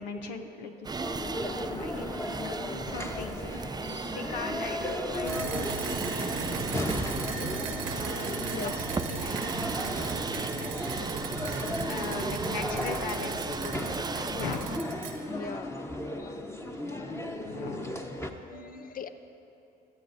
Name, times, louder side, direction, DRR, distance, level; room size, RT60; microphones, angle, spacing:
voice 1, 0.0-1.3 1.6-3.8 4.1-6.9 7.9-8.8 9.0-10.8 11.8-14.7 17.1-18.1 18.5-18.9, left 4 dB, 90° left, 5 dB, 0.7 m, -40 dB
sound 1, 0.8-14.8, right 4 dB, 20° right, 0.4 m, -37 dB
sound 2, 1.0-18.3, left 1 dB, 10° left, 1.1 m, -36 dB
sound 3, 5.3-15.1, right 5 dB, 90° right, 1.2 m, -37 dB
voice 2, 8.4-8.7 15.3-15.8 16.2-16.4 16.8-17.3 18.3-19.1, left 5 dB, 40° left, 10 dB, 0.7 m, -42 dB
21.0 x 13.5 x 2.7 m, 2.8 s
hypercardioid pair, 55°, 21 cm